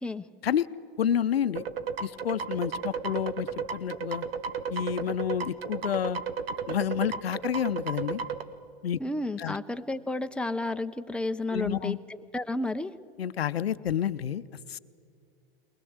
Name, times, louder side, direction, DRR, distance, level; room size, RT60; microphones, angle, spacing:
voice 1, 1.0-1.6 2.0-4.3 4.7-6.2 6.7-8.2 8.8-9.0 9.4-9.6 11.5-12.0 13.2-14.4 14.7-14.8, left 9 dB, 85° left, 14 dB, 0.6 m, -29 dB
sound 1, 1.6-8.4, right 6 dB, 75° right, 1.3 m, -33 dB
voice 2, 9.0-12.0 12.3-12.9, left 2 dB, 5° left, 8 dB, 0.7 m, -31 dB
21.5 x 20.0 x 8.0 m, 2.4 s
hypercardioid pair, 100°, 30 cm